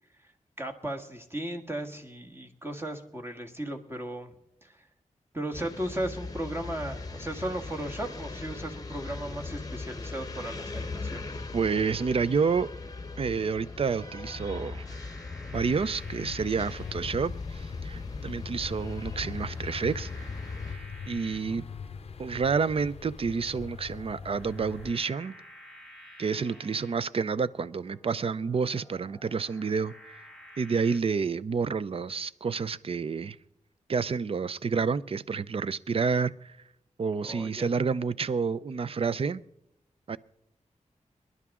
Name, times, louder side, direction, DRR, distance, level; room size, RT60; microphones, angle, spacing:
voice 1, 0.6-4.3 4.6-4.8 5.3-11.3 21.5-21.6 26.5-26.6 37.2-37.7, right 1 dB, 20° right, 1.6 m, -36 dB
sound 1, 5.5-20.8, left 3 dB, 30° left, 0.9 m, -39 dB
voice 2, 11.5-12.7 13.2-15.0 15.5-20.3 20.7-21.7 22.2-25.4 26.2-30.2 30.6-33.4 33.9-36.6 37.0-39.4 40.1-40.2, right 5 dB, 50° right, 0.5 m, -29 dB
sound 2, 13.5-31.0, left 1 dB, ahead, 3.9 m, -53 dB
sound 3, 15.5-24.9, left 6 dB, 55° left, 0.6 m, -41 dB
26.0 x 11.0 x 3.7 m
wide cardioid pair, 105°, 13 cm